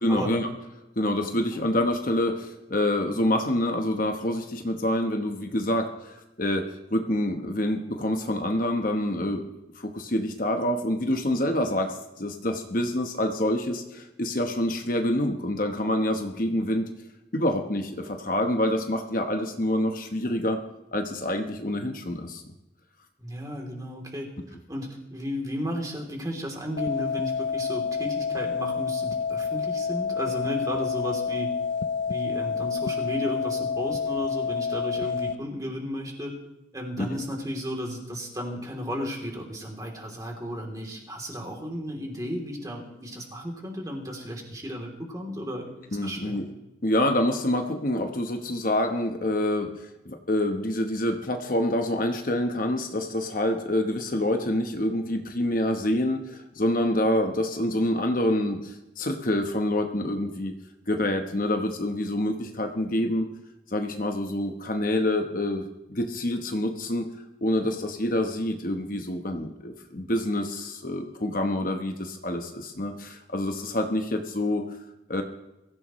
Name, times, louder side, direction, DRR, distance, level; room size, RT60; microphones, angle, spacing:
voice 1, 0.0-0.5 1.0-9.5 9.7-16.9 17.3-20.6 20.9-22.4 37.0-37.1 45.9-46.5 46.8-60.5 60.9-63.3 63.7-65.6 65.9-67.1 67.4-74.6 75.1-75.2, left 1 dB, 45° left, 4 dB, 1.1 m, -27 dB
voice 2, 23.2-24.3 24.7-31.5 32.1-36.3 36.7-46.4, equal, 20° right, 0 dB, 3.1 m, -34 dB
sound 1, 26.8-35.4, left 6 dB, 70° left, 0.6 m, -28 dB
23.0 x 15.5 x 3.1 m, 0.96 s
head